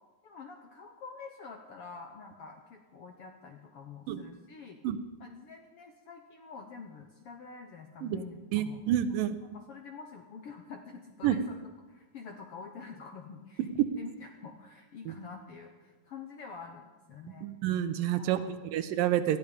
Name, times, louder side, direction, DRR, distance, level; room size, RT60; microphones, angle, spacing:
voice 1, 0.2-4.8 5.2-8.8 9.1-11.6 11.9-17.5 18.2-18.6, left 5 dB, 65° left, 4 dB, 1.5 m, -47 dB
voice 2, 8.5-9.4 11.2-11.4 13.6-13.9 15.1-15.2 17.4-18.4 18.7-19.4, right 11 dB, 85° right, 11 dB, 2.6 m, -28 dB
20.0 x 13.5 x 5.2 m, 1.3 s
omnidirectional pair, 3.9 m